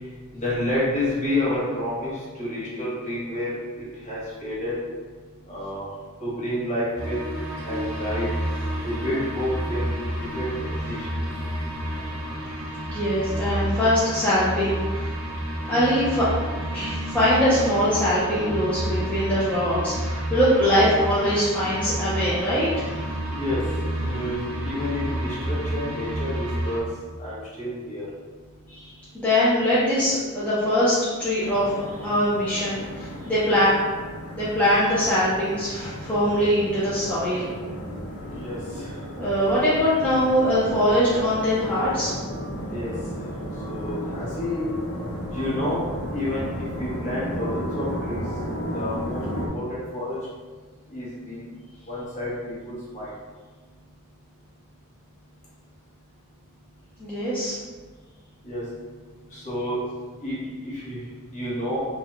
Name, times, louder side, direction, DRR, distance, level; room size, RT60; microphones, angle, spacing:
voice 1, 0.3-3.5 4.0-4.7 5.5-5.9 6.2-7.2 7.6-8.3 8.8-9.8 10.3-10.5 10.9-11.0 23.3-23.6 24.0-24.4 24.6-26.8 27.2-28.1 38.3-38.6 42.7-42.9 43.7-44.7 45.3-45.8 46.1-48.2 48.7-50.2 50.9-51.4 51.9-53.1 58.4-58.6 59.3-59.8 60.2-61.0 61.3-61.8, left 1 dB, 35° left, -8 dB, 1.4 m, -29 dB
sound 1, 7.0-26.8, right 1 dB, 60° right, 0.8 m, -30 dB
voice 2, 12.9-15.1 15.7-16.3 16.7-22.8 28.7-28.8 29.1-33.8 34.3-37.5 39.2-42.1 57.0-57.5, equal, 5° left, -11 dB, 0.7 m, -22 dB
sound 2, 31.4-49.5, equal, 65° left, 1.0 m, -34 dB
4.7 x 2.4 x 3.3 m, 1.4 s
head